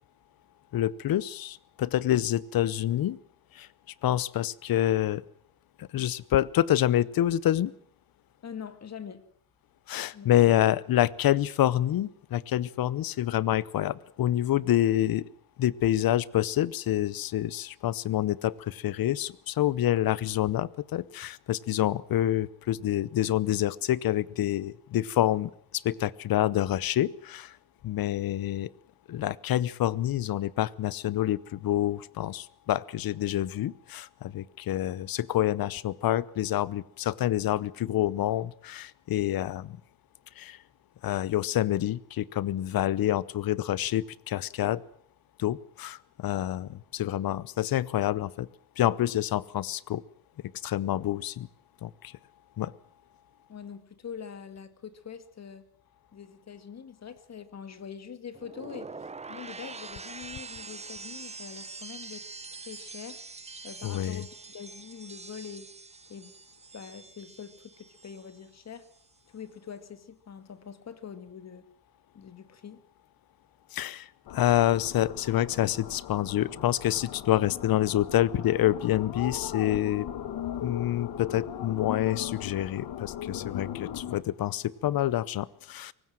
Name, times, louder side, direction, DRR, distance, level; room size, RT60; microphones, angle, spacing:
voice 1, 0.7-3.2 3.5-3.7 4.0-5.2 5.8-7.7 9.9-15.3 15.6-27.6 27.8-28.7 29.1-39.8 40.4-40.6 41.0-44.8 45.4-48.5 48.8-50.0 50.6-51.5 51.8-52.1 52.6-52.7 63.8-64.2 73.7-74.1 74.3-80.1 80.6-85.9, left 13 dB, 65° left, 22 dB, 0.9 m, -27 dB
voice 2, 8.4-9.2 10.1-10.3 53.5-55.7 56.1-62.3 62.7-63.2 63.6-65.7 66.1-66.3 66.7-68.9 69.3-71.7 72.1-72.8, left 7 dB, 45° left, 12 dB, 2.1 m, -44 dB
sound 1, 58.3-68.5 68.7-69.2, right 4 dB, 15° right, 0.8 m, -44 dB
sound 2, 74.3-84.2, left 10 dB, 80° left, 2.2 m, -38 dB
23.5 x 19.0 x 7.6 m, 0.62 s
cardioid pair, 130°, 38 cm